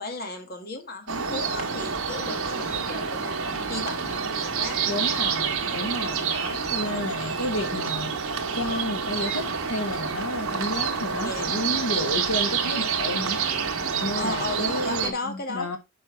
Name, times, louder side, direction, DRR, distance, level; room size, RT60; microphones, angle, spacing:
voice 1, 0.0-4.8 5.6-5.8 6.7-7.1 11.2-11.8 14.0-15.8, left 2 dB, 45° left, 1.6 m, -35 dB
sound 1, 1.1-15.1, right 6 dB, 75° right, 1.6 m, -28 dB
voice 2, 4.8-13.4 14.0-15.8, left 1 dB, 75° left, 1.4 m, -31 dB
6.6 x 5.5 x 4.4 m
head